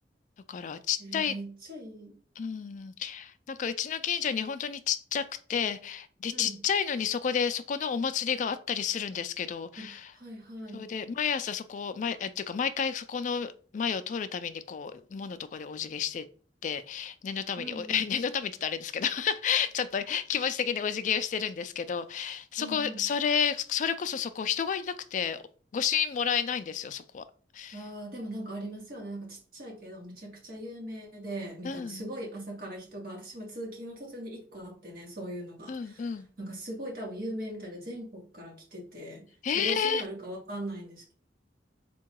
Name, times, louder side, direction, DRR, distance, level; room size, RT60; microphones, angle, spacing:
voice 1, 0.5-1.3 2.4-10.1 10.7-16.3 16.6-25.4 25.7-27.2 27.5-27.8 31.6-32.0 35.7-36.3 39.4-40.0, left 7 dB, 45° left, 12 dB, 0.3 m, -31 dB
voice 2, 1.0-2.2 6.3-6.6 9.8-10.9 17.6-18.0 22.6-23.1 27.7-39.3 39.5-41.1, right 1 dB, 55° right, -1 dB, 1.4 m, -40 dB
3.6 x 2.3 x 4.5 m, 0.43 s
head